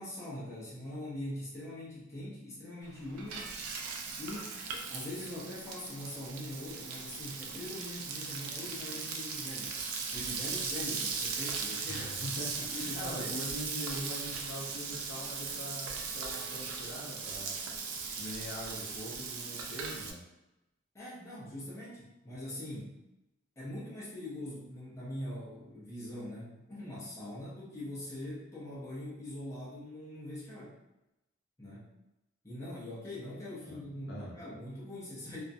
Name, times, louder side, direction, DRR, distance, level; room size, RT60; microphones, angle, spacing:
voice 1, 0.0-3.5 4.2-4.6 4.9-9.7 10.1-12.2 12.6-13.3 20.9-22.9 23.6-30.8 31.6-31.9 32.4-35.4, left 1 dB, 15° left, -8 dB, 0.6 m, -42 dB
Frying (food), 2.8-20.1, right 5 dB, 90° right, 0.4 m, -38 dB
voice 2, 11.8-20.2 33.7-33.8 34.1-34.3, equal, 55° left, -5 dB, 0.6 m, -43 dB
2.4 x 2.1 x 2.6 m, 0.95 s
head